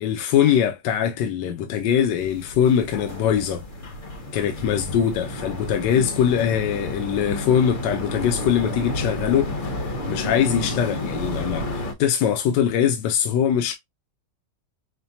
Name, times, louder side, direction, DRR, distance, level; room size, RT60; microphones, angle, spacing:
voice 1, 0.0-3.6 4.3-13.7, left 8 dB, 80° left, 1.3 m, -22 dB
sound 1, 1.9-11.9, left 1 dB, 40° left, 0.8 m, -31 dB
5.9 x 2.2 x 2.7 m
omnidirectional pair, 1.9 m